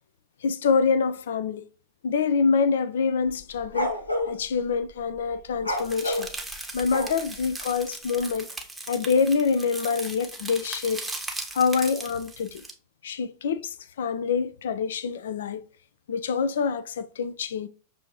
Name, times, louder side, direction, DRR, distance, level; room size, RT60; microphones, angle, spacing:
voice 1, 0.4-1.6 2.0-3.9 4.3-6.3 6.7-8.5 8.9-11.0 11.5-12.6 13.0-15.6 16.1-17.7, left 5 dB, 60° left, 0.4 m, -26 dB
sound 1, 3.3-4.3 5.6-7.4, left 1 dB, 85° left, 0.8 m, -29 dB
sound 2, 5.8-12.7, right 2 dB, 5° right, 0.8 m, -38 dB
6.1 x 2.7 x 2.9 m
figure-of-eight pair, 90°, 0 cm